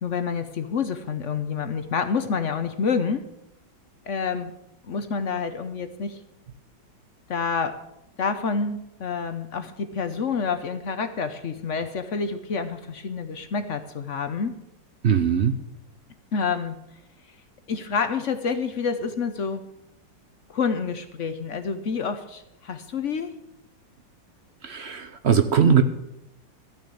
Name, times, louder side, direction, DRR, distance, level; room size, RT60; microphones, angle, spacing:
voice 1, 0.0-3.2 4.1-4.5 4.8-6.2 7.3-7.8 8.2-14.5 16.3-16.8 17.7-19.7 20.5-23.3, left 5 dB, 55° left, 9 dB, 0.9 m, -28 dB
voice 2, 15.0-15.5 24.6-25.8, right 7 dB, 60° right, 9 dB, 0.7 m, -20 dB
14.0 x 6.4 x 8.5 m, 0.83 s
omnidirectional pair, 2.0 m